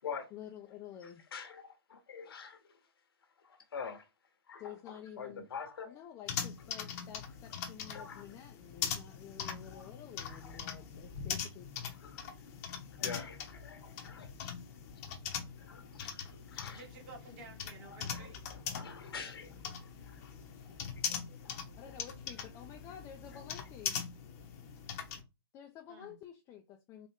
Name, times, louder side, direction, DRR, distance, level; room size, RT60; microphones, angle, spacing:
voice 1, 0.3-1.3 4.6-5.5 5.9-11.7 21.8-24.0 25.5-27.1, left 9 dB, 20° left, 0.5 m, -50 dB
voice 2, 1.0-2.8 3.4-4.1 4.5-5.9 7.9-8.2 9.6-9.9 10.2-10.6 12.0-12.3 12.6-14.5 15.6-16.8 17.9-20.3 20.6-20.7 21.1-21.6, left 6 dB, 70° left, 1.2 m, -47 dB
sound 1, 6.3-25.2, left 7 dB, 40° left, 0.9 m, -42 dB
voice 3, 16.7-18.4 25.9-26.2, right 3 dB, 35° right, 1.6 m, -52 dB
4.0 x 2.6 x 3.5 m
hypercardioid pair, 135°, 13 cm